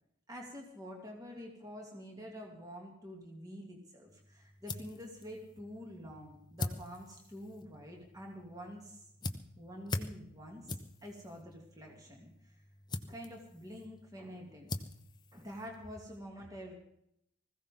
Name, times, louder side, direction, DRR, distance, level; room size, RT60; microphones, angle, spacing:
voice 1, 0.3-9.0 9.6-12.6 13.1-14.7 15.3-16.7, equal, 15° right, 0 dB, 2.8 m, -47 dB
sound 1, 4.1-16.2, left 2 dB, 20° left, 0.9 m, -45 dB
20.5 x 16.0 x 3.9 m, 0.74 s
head